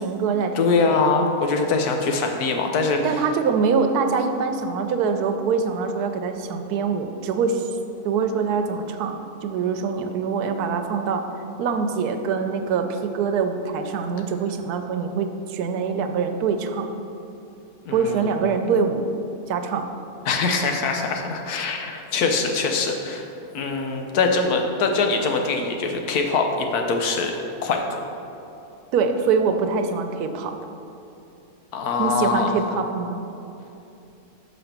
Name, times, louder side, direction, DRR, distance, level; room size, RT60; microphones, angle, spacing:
voice 1, 0.0-1.0 3.0-7.7 8.0-11.2 11.6-16.9 17.9-19.0 19.5-19.9 28.9-30.6 32.0-33.2, right 5 dB, 85° right, 7 dB, 1.1 m, -24 dB
voice 2, 0.5-3.2 17.8-18.3 20.3-23.3 23.5-27.8 31.7-32.6, left 4 dB, 80° left, 3 dB, 1.3 m, -23 dB
6.4 x 5.2 x 5.8 m, 2.8 s
omnidirectional pair, 1.6 m